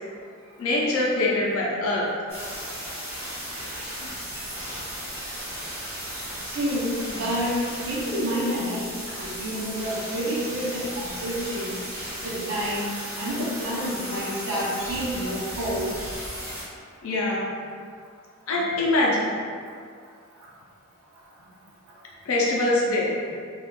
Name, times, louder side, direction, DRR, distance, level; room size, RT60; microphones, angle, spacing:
voice 1, 0.6-2.1 4.0-4.1 9.1-9.2 17.0-17.5 18.5-19.3 22.3-23.1, left 2 dB, 80° left, -3 dB, 0.5 m, -23 dB
sound 1, 2.3-16.6, equal, 30° right, 1.2 m, -35 dB
voice 2, 6.5-8.9 9.2-11.8 12.2-12.9 13.2-15.9, equal, 55° right, -6 dB, 0.7 m, -29 dB
3.5 x 2.3 x 2.3 m, 2.1 s
head